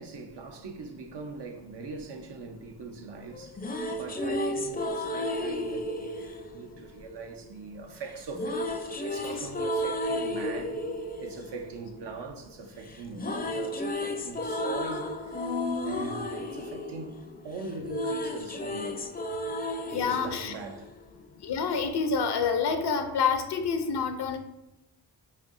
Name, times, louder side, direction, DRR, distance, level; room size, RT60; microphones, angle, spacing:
voice 1, 0.0-3.6 3.9-10.8 11.2-19.1 19.9-20.9, right 4 dB, 80° right, 0.7 m, -42 dB
sound 1, 3.3-7.5 8.3-12.6 12.9-21.4, left 1 dB, 25° left, 0.4 m, -33 dB
voice 2, 19.9-20.5 21.4-24.4, left 5 dB, 70° left, 0.6 m, -27 dB
5.1 x 2.6 x 2.5 m
cardioid pair, 55°, 41 cm